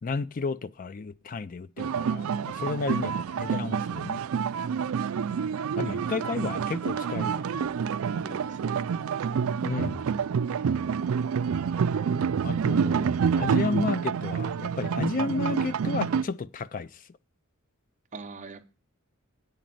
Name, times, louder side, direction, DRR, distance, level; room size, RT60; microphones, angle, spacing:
voice 1, 0.0-4.2 5.8-7.7 9.6-10.1 12.4-13.1 13.4-17.0, left 4 dB, 40° left, 0.4 m, -32 dB
sound 1, 1.8-16.2, right 6 dB, 70° right, 0.4 m, -28 dB
voice 2, 5.7-6.1 8.2-8.8 18.1-18.7, right 3 dB, 35° right, 0.7 m, -43 dB
8.4 x 5.2 x 7.5 m
head